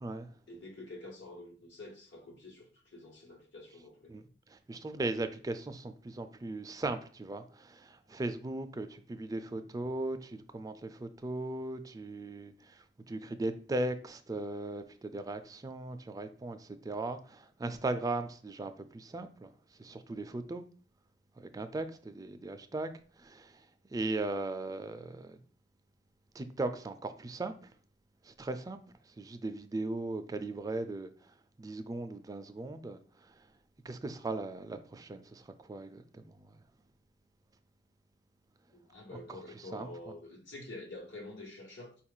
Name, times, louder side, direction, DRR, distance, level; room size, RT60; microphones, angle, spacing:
voice 1, 0.5-4.3 38.7-42.0, left 2 dB, 80° left, 1.1 m, -48 dB
voice 2, 4.5-19.5 19.8-20.6 21.4-23.6 23.9-25.4 26.3-27.7 28.2-28.8 29.2-31.1 31.6-33.4 33.8-36.6 39.3-39.9, right 2 dB, 20° right, 0.3 m, -38 dB
4.6 x 2.4 x 3.6 m
head